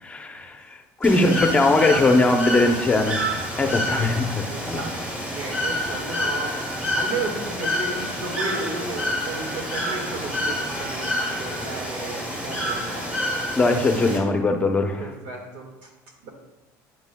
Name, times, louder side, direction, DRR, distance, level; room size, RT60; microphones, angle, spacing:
voice 1, 0.0-3.2 3.6-4.8 13.5-15.0, left 2 dB, 15° left, 5 dB, 0.7 m, -20 dB
Bird / Water, 1.0-14.2, equal, 20° right, 1.9 m, -28 dB
voice 2, 1.0-3.1 3.9-4.1 4.5-13.2 15.0-15.9 16.2-16.3, right 3 dB, 80° right, 1 dB, 1.8 m, -34 dB
9.4 x 9.2 x 2.3 m, 0.98 s
cardioid pair, 135°, 7 cm